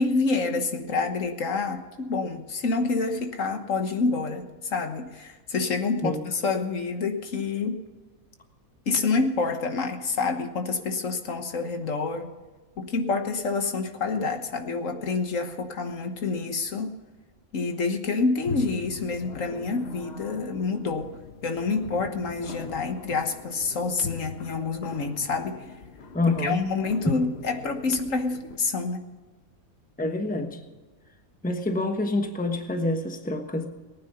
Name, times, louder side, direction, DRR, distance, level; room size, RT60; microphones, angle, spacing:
voice 1, 0.0-7.8 8.9-12.3 12.8-17.0 17.5-21.1 21.4-25.6 26.4-29.0, left 4 dB, 65° left, 5 dB, 1.6 m, -27 dB
sound 1, 18.4-28.6, left 4 dB, 50° left, 1.3 m, -41 dB
voice 2, 26.1-26.6 27.1-27.2 30.0-30.6 31.4-33.7, left 2 dB, 5° left, 5 dB, 1.1 m, -26 dB
19.0 x 9.6 x 5.7 m, 1.3 s
omnidirectional pair, 1.5 m